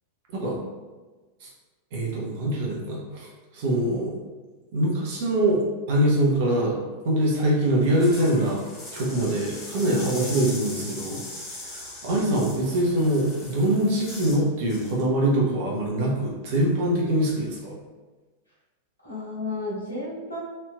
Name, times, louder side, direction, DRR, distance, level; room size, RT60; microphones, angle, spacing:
voice 1, 1.9-3.3 3.5-4.1 4.7-6.8 7.0-8.6 8.9-11.2 11.5-17.8, right 1 dB, 50° right, -3 dB, 0.9 m, -24 dB
sound 1, 7.8-14.4 14.7-15.0, left 2 dB, 25° left, 1.0 m, -39 dB
voice 2, 12.1-12.5 19.0-20.4, left 1 dB, 90° left, -8 dB, 1.2 m, -32 dB
3.2 x 2.8 x 2.2 m, 1.3 s
figure-of-eight pair, 90°, 0 cm